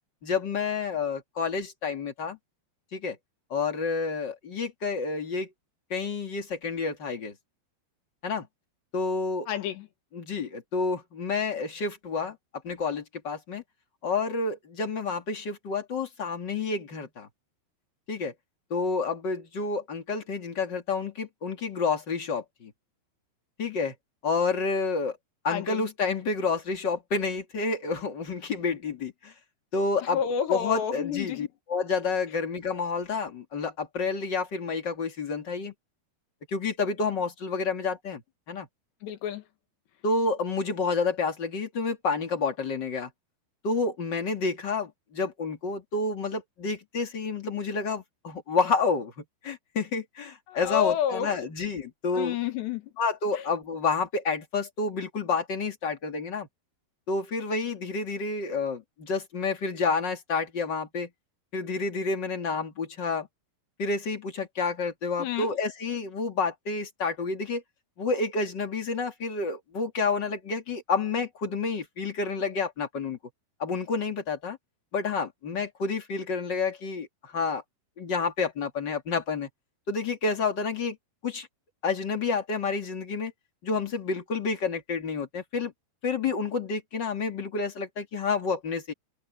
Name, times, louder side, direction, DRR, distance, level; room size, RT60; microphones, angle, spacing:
voice 1, 0.2-2.4 2.9-3.2 3.5-5.5 5.9-7.3 8.2-8.5 8.9-9.5 10.1-12.4 12.6-13.6 14.0-17.3 18.1-18.3 18.7-22.7 23.6-23.9 24.2-25.2 25.4-29.3 29.7-30.2 30.5-35.7 36.5-38.2 38.5-38.7 40.0-43.1 43.6-49.1 49.4-52.4 53.0-56.5 57.1-61.1 61.5-63.3 63.8-67.6 68.0-73.2 73.6-74.6 74.9-77.6 78.0-79.5 79.9-81.0 81.2-81.5 81.8-83.3 83.6-85.7 86.0-88.9, left 4 dB, 30° left, 2.4 m, -29 dB
voice 2, 9.5-9.9 25.5-25.8 30.0-31.5 39.0-39.4 50.5-51.4 52.1-52.9 53.3-53.5 65.2-65.5, left 9 dB, 85° left, 4.1 m, -30 dB
omnidirectional pair, 4.8 m